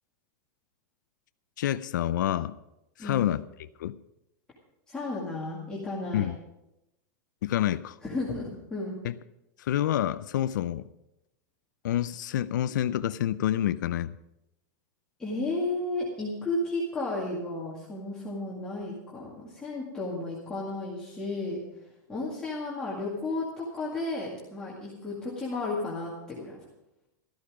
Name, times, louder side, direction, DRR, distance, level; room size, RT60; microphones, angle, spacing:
voice 1, 1.6-2.5 3.0-3.4 3.8-3.9 6.1-6.3 7.4-8.0 9.0-9.1 9.6-10.9 11.8-14.2, left 12 dB, 70° left, 13 dB, 0.5 m, -28 dB
voice 2, 4.9-6.3 8.0-8.9 15.2-21.8 22.1-26.6, left 2 dB, 5° left, -7 dB, 2.1 m, -33 dB
14.0 x 13.0 x 5.0 m, 0.89 s
supercardioid pair, 180°, 10 cm